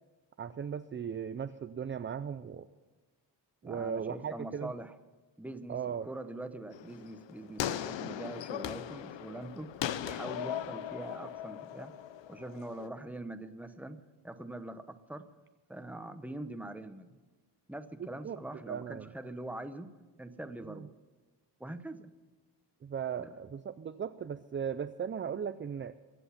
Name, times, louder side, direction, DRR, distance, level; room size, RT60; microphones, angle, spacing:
voice 1, 0.4-2.7 3.6-4.7 5.7-6.1 18.0-18.4 18.7-19.1 20.7-20.9 22.8-25.9, right 7 dB, 30° right, 12 dB, 0.4 m, -37 dB
voice 2, 3.6-4.9 5.4-9.7 10.0-11.9 12.3-15.3 15.7-17.2 17.7-19.9 20.2-20.9 21.6-22.1 23.2-23.3, right 1 dB, 5° right, 9 dB, 0.8 m, -43 dB
sound 1, 6.7-12.9, left 11 dB, 85° left, 0.7 m, -39 dB
23.0 x 8.0 x 5.7 m, 1.3 s
wide cardioid pair, 120°, 43 cm